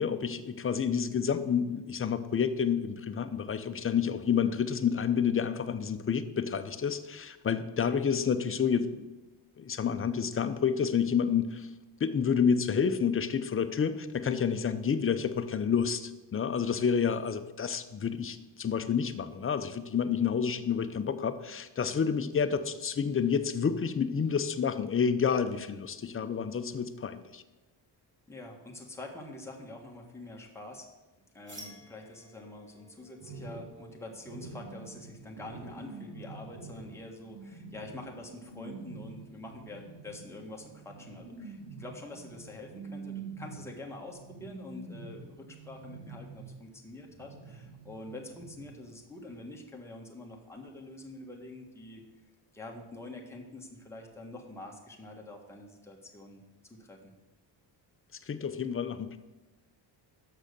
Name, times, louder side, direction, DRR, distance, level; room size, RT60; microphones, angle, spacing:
voice 1, 0.0-9.1 9.6-11.7 12.0-27.4 58.3-59.2, left 7 dB, 30° left, 10 dB, 0.6 m, -29 dB
voice 2, 28.3-30.9 31.3-52.0 52.5-57.0, left 2 dB, 5° left, 0 dB, 1.4 m, -46 dB
sound 1, 31.4-37.0, equal, 25° right, 2.6 m, -55 dB
sound 2, 33.2-46.8 47.1-49.0 49.3-49.4, right 4 dB, 60° right, 2.9 m, -47 dB
6.4 x 6.2 x 6.7 m, 1.1 s
cardioid pair, 95°, 47 cm